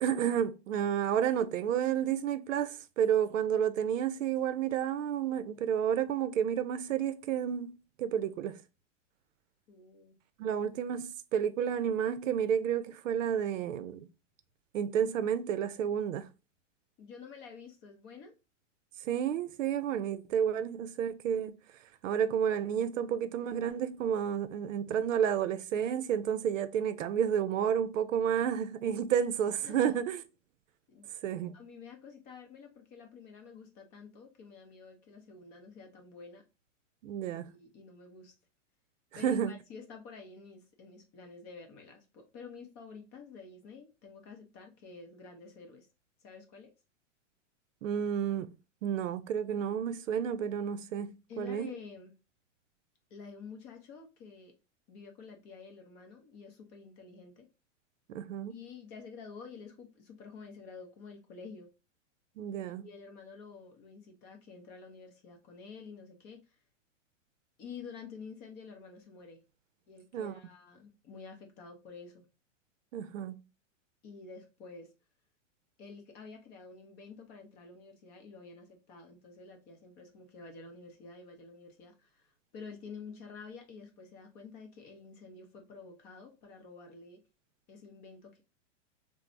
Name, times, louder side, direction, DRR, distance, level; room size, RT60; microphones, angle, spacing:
voice 1, 0.0-7.7 8.0-8.6 10.4-14.1 14.7-16.3 19.0-21.6 22.0-30.2 31.2-31.6 37.0-37.5 39.2-39.5 47.8-48.5 48.8-51.7 58.1-58.5 62.4-62.9 70.1-70.4 72.9-73.4, right 8 dB, 85° right, 0.5 m, -31 dB
voice 2, 9.7-10.1 17.0-18.3 29.6-30.0 30.9-31.1 31.5-36.4 37.2-38.3 39.1-45.9 46.2-46.7 51.3-52.1 53.1-54.6 54.9-57.5 58.5-61.7 62.8-66.6 67.6-69.4 69.9-72.3 74.0-74.9 75.8-87.2 87.7-88.4, left 5 dB, 25° left, 0.5 m, -49 dB
3.1 x 2.0 x 2.5 m
hypercardioid pair, 135°, 37 cm